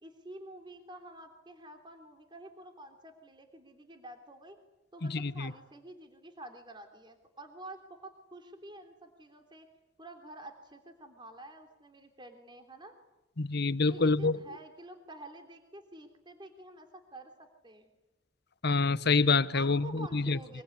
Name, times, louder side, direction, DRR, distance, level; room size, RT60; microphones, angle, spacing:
voice 1, 0.0-4.6 4.9-9.7 10.0-12.9 13.9-17.9 19.5-20.6, right 1 dB, 25° right, 3.2 m, -49 dB
voice 2, 5.1-5.5 13.4-14.4 18.6-20.4, left 4 dB, 55° left, 1.0 m, -27 dB
25.0 x 24.0 x 9.8 m
head